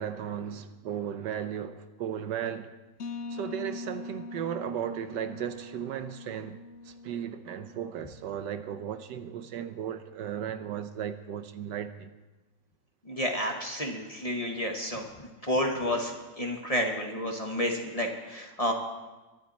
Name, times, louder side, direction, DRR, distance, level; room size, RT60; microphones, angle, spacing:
voice 1, 0.0-2.7 3.3-6.6 6.8-12.1, right 9 dB, 75° right, 1.3 m, -35 dB
sound 1, 3.0-8.6, left 3 dB, 55° left, 0.9 m, -42 dB
voice 2, 13.0-18.7, equal, 20° left, 1.3 m, -30 dB
22.5 x 12.0 x 4.2 m
omnidirectional pair, 2.0 m